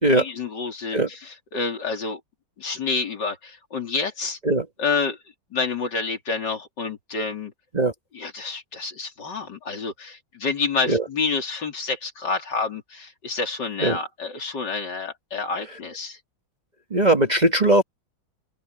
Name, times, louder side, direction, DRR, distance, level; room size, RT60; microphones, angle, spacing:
voice 1, 0.1-2.2 2.6-4.4 4.8-5.2 5.5-7.5 8.1-16.2, left 4 dB, 75° left, 3.7 m, -28 dB
voice 2, 16.9-17.8, right 1 dB, 25° right, 1.7 m, -19 dB
open air
omnidirectional pair, 1.9 m